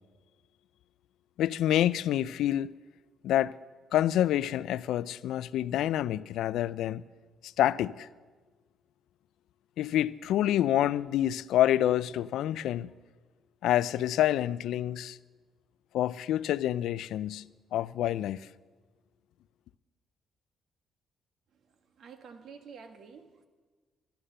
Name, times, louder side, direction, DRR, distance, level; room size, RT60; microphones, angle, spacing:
voice 1, 1.4-2.7 3.2-3.5 3.9-7.0 7.4-8.1 9.8-12.9 13.6-15.2 15.9-17.5 17.7-18.5, left 12 dB, 85° left, 0.3 m, -27 dB
voice 2, 22.0-23.5, right 6 dB, 65° right, 1.4 m, -49 dB
13.0 x 11.5 x 6.7 m
cardioid pair, 90°, 0 cm